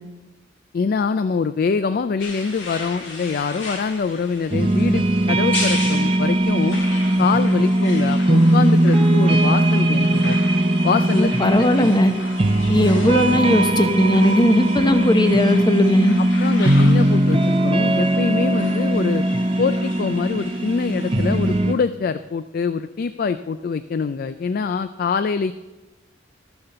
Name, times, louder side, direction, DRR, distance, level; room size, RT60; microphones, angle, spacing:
voice 1, 0.7-6.8 7.2-10.4 10.8-11.9 16.4-19.2 19.6-25.5, left 5 dB, 50° left, 12 dB, 0.4 m, -24 dB
sound 1, 2.2-21.7, left 2 dB, 75° left, 2.4 m, -36 dB
sound 2, 4.5-21.7, right 1 dB, 30° right, 0.8 m, -19 dB
voice 2, 11.2-12.1 12.7-16.2, left 1 dB, 25° left, 8 dB, 0.9 m, -18 dB
12.5 x 6.9 x 6.8 m, 1.1 s
head